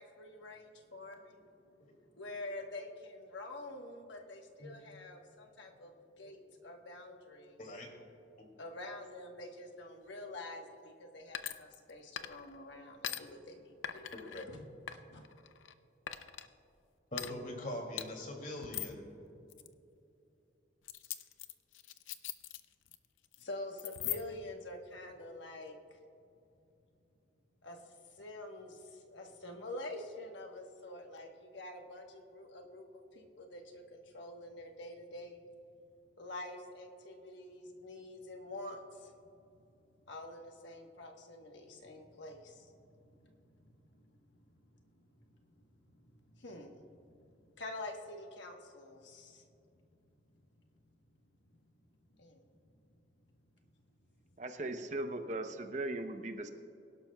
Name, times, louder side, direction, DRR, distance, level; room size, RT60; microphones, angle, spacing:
voice 1, 0.0-1.4 2.1-5.9 6.2-7.6 8.6-14.1 14.5-15.2 23.4-26.0 27.6-27.8 28.1-35.4 36.2-39.1 40.1-42.7 43.0-43.3 43.6-43.7 44.9-45.0 45.6-47.2 47.5-49.4 52.2-52.4, left 2 dB, 70° left, 1.2 m, -47 dB
sound 1, 11.3-11.9 12.2-12.6 13.0-13.2 13.8-14.4 14.9-15.7 16.1-16.5 17.1-17.3 18.0-18.1 18.6-19.0 19.5-19.7 20.9-23.0 23.2-23.4 23.8-24.5, left 11 dB, 90° left, 0.6 m, -41 dB
voice 2, 14.1-14.5 17.1-19.2, left 1 dB, 45° left, 2.4 m, -42 dB
voice 3, 54.4-56.5, right 2 dB, 40° right, 0.7 m, -38 dB
23.0 x 12.0 x 2.3 m
head